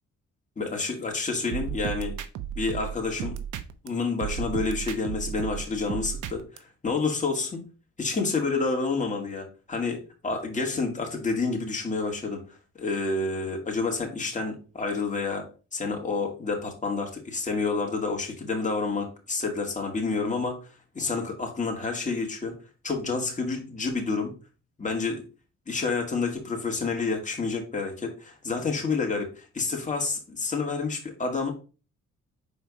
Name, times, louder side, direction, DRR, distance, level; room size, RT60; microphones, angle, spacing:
voice 1, 0.6-2.1 2.6-3.4 3.8-7.6 8.0-12.4 12.8-20.6 20.9-22.5 22.8-24.3 24.8-25.2 25.7-31.5, left 4 dB, 25° left, 1 dB, 2.2 m, -29 dB
sound 1, 1.5-3.9 4.2-6.6, right 10 dB, 80° right, 0.8 m, -34 dB
5.6 x 4.3 x 4.8 m, 0.34 s
cardioid pair, 90°, 30 cm